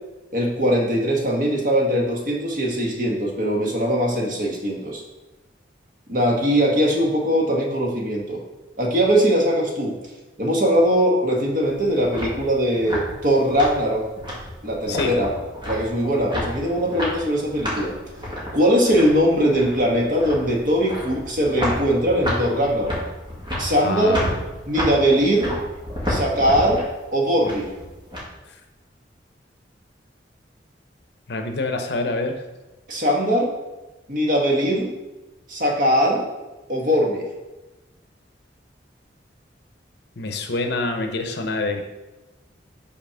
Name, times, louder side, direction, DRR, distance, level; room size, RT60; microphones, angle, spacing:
voice 1, 0.3-5.0 6.1-8.4 8.8-10.0 10.4-14.1 14.6-15.3 15.7-18.0 18.5-23.0 23.6-24.2 24.7-25.5 26.1-26.8 27.1-27.7 32.9-33.5 34.1-34.9 35.5-36.2 36.7-37.2, equal, 50° right, 0 dB, 1.3 m, -21 dB
sound 1, 11.6-28.2, equal, 30° right, 2.0 m, -31 dB
voice 2, 23.8-24.3 31.3-32.4 40.2-41.8, left 3 dB, 65° left, 5 dB, 0.8 m, -26 dB
5.8 x 4.3 x 5.6 m, 1.1 s
head